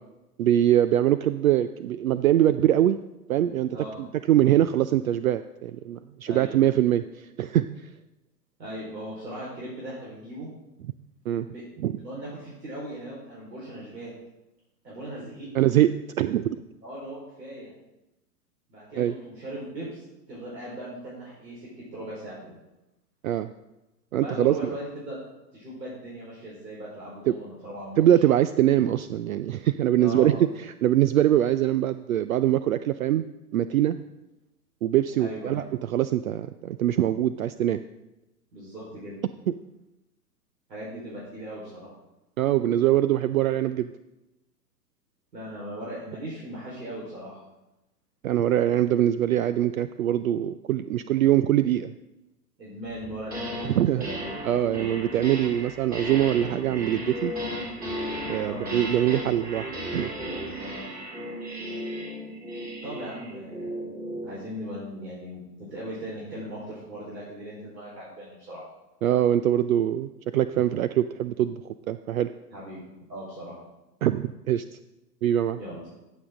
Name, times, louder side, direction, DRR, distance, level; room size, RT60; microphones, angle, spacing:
voice 1, 0.4-3.0 3.3-7.9 11.3-11.5 11.8-12.0 15.5-16.6 19.0-19.1 23.2-23.5 24.1-24.6 27.3-27.4 28.0-30.5 30.8-33.2 33.5-34.0 34.8-37.8 39.5-39.6 42.4-43.9 48.2-51.9 53.6-54.1 54.4-57.3 58.3-60.1 69.0-71.6 71.9-72.3 74.0-74.6 75.2-75.6, right 12 dB, 55° right, 13 dB, 0.5 m, -23 dB
voice 2, 3.7-4.0 6.3-6.5 8.6-10.5 11.5-14.1 14.8-15.5 16.8-17.7 18.7-22.5 24.1-25.2 25.5-28.0 29.9-30.4 35.2-35.6 38.5-39.2 40.7-41.9 45.3-47.4 52.6-54.3 58.4-58.6 60.6-60.8 62.8-63.8 64.2-68.6 72.5-72.8 73.1-73.6 75.6-75.9, equal, 75° right, -6 dB, 4.4 m, -38 dB
sound 1, 53.0-53.7 54.0-64.4, equal, 15° right, 3.5 m, -35 dB
14.0 x 7.2 x 3.7 m, 0.97 s
figure-of-eight pair, 115°, 50 cm